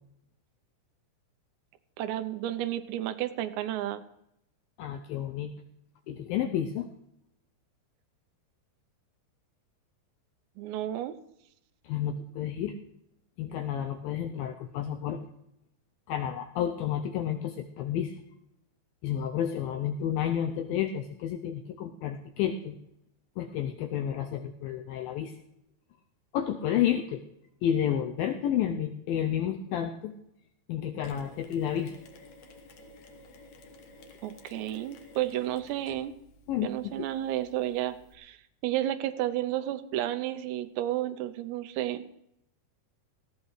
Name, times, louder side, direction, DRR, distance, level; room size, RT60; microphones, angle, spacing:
voice 1, 2.0-4.1 10.6-11.2 34.2-36.1 36.6-38.4 38.6-42.0, right 13 dB, 85° right, 9 dB, 2.9 m, -32 dB
voice 2, 4.8-5.5 6.1-6.9 11.8-12.8 13.4-15.2 16.1-18.2 19.0-22.8 23.4-25.4 26.3-27.2 27.6-30.1 30.7-32.0 36.5-37.1, left 10 dB, 90° left, 6 dB, 2.0 m, -31 dB
Mechanisms, 31.0-38.1, left 2 dB, 60° left, 2.1 m, -52 dB
19.5 x 15.5 x 3.2 m, 0.80 s
omnidirectional pair, 5.0 m